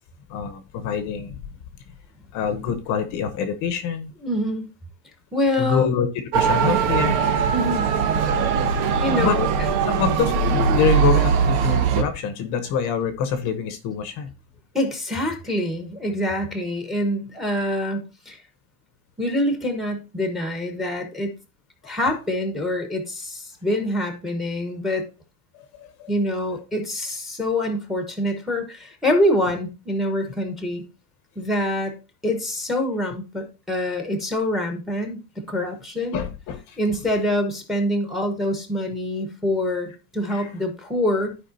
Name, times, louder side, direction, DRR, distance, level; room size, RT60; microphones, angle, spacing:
voice 1, 0.3-1.4 2.3-4.1 5.6-6.1 6.3-7.2 9.1-9.4 9.9-14.3 25.8-26.1 36.1-36.8 40.3-40.5, left 7 dB, 40° left, 9 dB, 0.9 m, -25 dB
voice 2, 4.2-4.7 5.3-5.9 7.5-7.9 9.0-9.7 14.7-18.4 19.2-21.4 21.8-25.1 26.1-30.8 31.4-31.9 32.2-36.2 36.8-41.4, left 1 dB, ahead, 5 dB, 1.1 m, -25 dB
Motor vehicle (road) / Siren, 6.3-12.0, right 6 dB, 85° right, 1.6 m, -20 dB
13.5 x 5.0 x 2.7 m, 0.30 s
cardioid pair, 175°, 44 cm